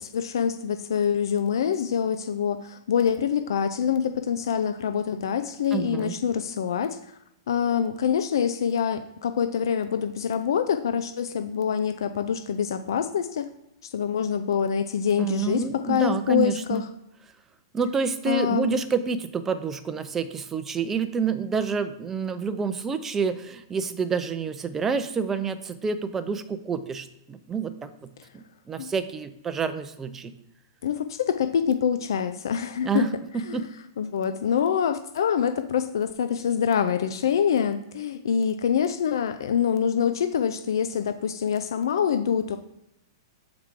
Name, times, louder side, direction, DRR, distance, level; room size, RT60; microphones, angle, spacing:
voice 1, 0.0-7.0 7.5-13.5 13.9-16.8 18.3-18.8 30.8-33.1 33.4-33.6 34.0-42.6, left 8 dB, 75° left, 9 dB, 0.5 m, -25 dB
voice 2, 5.7-6.2 15.2-16.8 17.7-30.3 32.8-33.1 33.3-33.6, right 5 dB, 15° right, 10 dB, 0.5 m, -28 dB
7.2 x 4.8 x 3.7 m, 0.85 s
hypercardioid pair, 145°, 2 cm